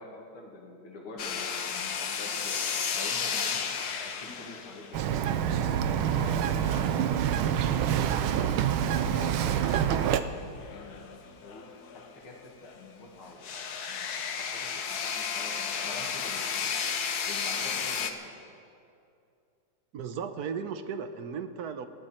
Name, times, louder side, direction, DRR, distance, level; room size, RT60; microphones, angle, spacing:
voice 1, 0.0-2.6 2.9-3.7 4.0-5.2 5.5-13.5 13.9-14.1 14.4-16.8 17.3-18.4, left 2 dB, 90° left, -1 dB, 2.9 m, -46 dB
sound 1, 1.2-7.8 8.4-8.5 8.8-12.4 12.7-12.8 13.4-18.1, left 6 dB, 60° left, 1.3 m, -34 dB
Bird vocalization bird call bird song, 4.9-10.2, right 9 dB, 85° right, 1.5 m, -26 dB
voice 2, 19.9-21.9, right 6 dB, 60° right, 9 dB, 1.1 m, -35 dB
28.0 x 11.5 x 4.4 m, 2.6 s
omnidirectional pair, 2.3 m